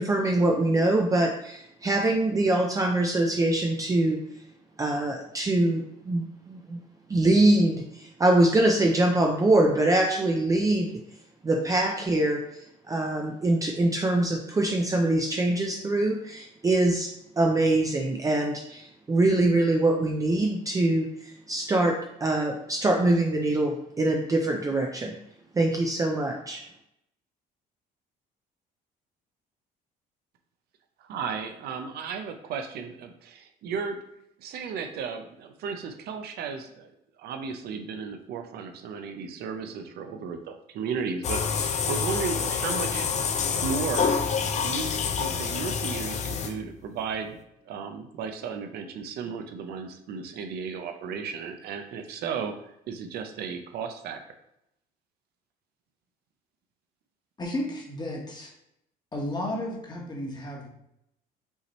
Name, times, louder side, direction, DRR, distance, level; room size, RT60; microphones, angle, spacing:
voice 1, 0.0-4.2 4.8-6.8 7.1-11.0 11.4-17.1 17.4-21.9 22.2-25.1 25.5-26.6, right 2 dB, 20° right, 1 dB, 0.5 m, -24 dB
voice 2, 31.0-34.0 34.4-36.9 37.2-43.1 43.4-44.1 44.6-47.4 47.7-54.2, right 6 dB, 70° right, 6 dB, 0.6 m, -34 dB
sound 1, 41.2-46.8, left 6 dB, 45° left, 0.5 m, -27 dB
voice 3, 57.4-58.5 59.1-60.7, left 1 dB, 25° left, -1 dB, 1.3 m, -33 dB
5.5 x 2.9 x 3.0 m, 0.80 s
cardioid pair, 110°, 17 cm